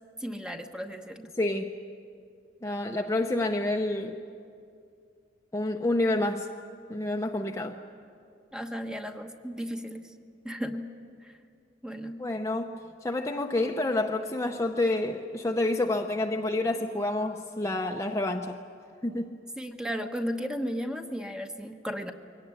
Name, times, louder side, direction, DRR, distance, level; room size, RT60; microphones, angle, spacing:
voice 1, 0.2-1.3 8.5-10.1 10.4-10.9 11.2-11.3 11.8-12.2 19.6-22.1, equal, 5° right, 5 dB, 1.0 m, -35 dB
voice 2, 1.4-1.7 2.6-4.2 5.5-6.5 6.9-7.8 12.2-18.6 19.0-19.4, left 2 dB, 15° left, 2 dB, 0.7 m, -28 dB
23.5 x 18.0 x 9.6 m, 2.3 s
head